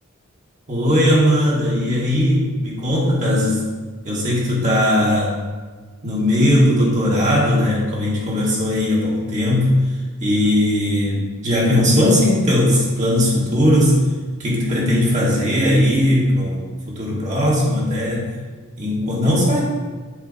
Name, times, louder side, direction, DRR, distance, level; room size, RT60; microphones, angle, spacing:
voice 1, 0.7-3.6 4.0-5.4 6.0-14.0 14.4-16.6 16.9-18.3 18.8-19.6, left 1 dB, 35° right, -5 dB, 1.2 m, -18 dB
6.3 x 4.5 x 4.0 m, 1.4 s
head